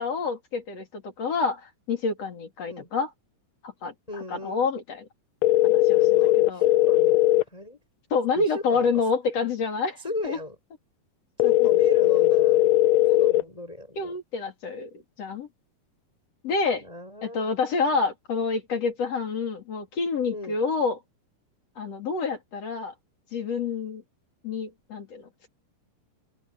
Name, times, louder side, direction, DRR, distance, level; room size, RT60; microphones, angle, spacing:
voice 1, 0.0-3.1 3.6-5.1 5.6-6.6 8.1-10.4 11.4-11.7 13.1-13.2 14.0-14.9 15.2-15.5 16.4-16.8 17.2-21.0 21.8-22.9 23.3-24.0 24.4-25.5, left 4 dB, 50° left, 4.1 m, -28 dB
voice 2, 4.1-4.7 5.9-7.2 7.5-7.8 8.4-8.9 10.0-10.6 11.4-12.6 13.1-14.1 16.7-17.5 20.3-20.6, left 2 dB, 10° left, 5.4 m, -37 dB
sound 1, 5.4-7.4 11.4-13.4, left 15 dB, 85° left, 1.5 m, -19 dB
open air
omnidirectional pair, 3.8 m